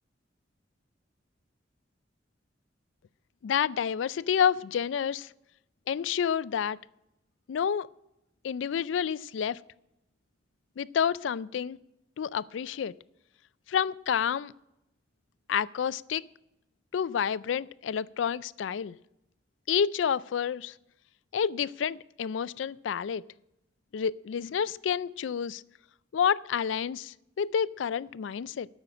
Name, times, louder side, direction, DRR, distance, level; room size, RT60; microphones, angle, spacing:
voice 1, 3.4-5.3 5.9-6.8 7.5-7.9 8.4-9.6 10.8-11.8 12.2-12.9 13.7-14.5 15.5-16.2 16.9-18.9 19.7-20.7 21.3-23.2 23.9-25.6 26.1-28.7, left 7 dB, 85° left, 0.4 m, -29 dB
13.5 x 6.3 x 8.5 m
head